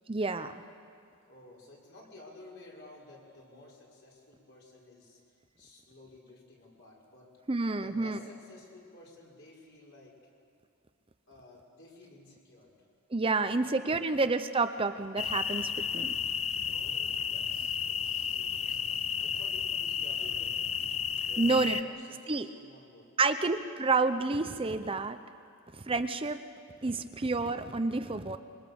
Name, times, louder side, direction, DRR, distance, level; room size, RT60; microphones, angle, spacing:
voice 1, 0.1-0.5 7.5-8.2 13.1-16.1 21.4-21.8 22.3-22.5 23.2-25.2 25.8-26.4 26.8-28.4, right 3 dB, 25° right, 9 dB, 0.6 m, -29 dB
voice 2, 1.3-5.2 5.6-7.3 7.8-10.1 11.3-12.9 13.4-14.2 16.7-20.9 21.2-23.1 23.8-23.9, left 2 dB, 55° left, -3 dB, 5.9 m, -54 dB
sound 1, 15.2-21.8, left 7 dB, 30° left, 0.6 m, -32 dB
26.0 x 24.0 x 7.1 m, 2.3 s
head